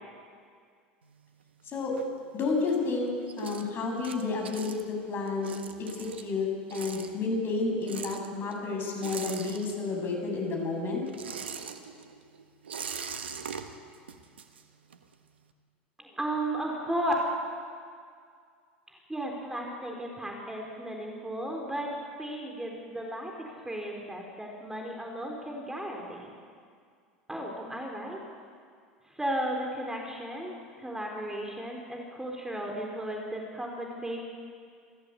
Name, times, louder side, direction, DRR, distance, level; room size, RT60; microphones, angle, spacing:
sound 1, 1.0-2.6 3.0-10.2 10.4-15.1, right 6 dB, 85° right, 1.4 m, -42 dB
voice 1, 2.3-3.1 3.4-11.0, left 4 dB, 40° left, 2 dB, 7.0 m, -31 dB
voice 2, 16.0-17.1 19.1-21.9 22.2-23.3 23.6-26.3 27.3-28.2 29.1-34.3, right 1 dB, 10° right, 0 dB, 4.2 m, -35 dB
26.5 x 15.0 x 8.4 m, 2.2 s
hypercardioid pair, 80°, 6 cm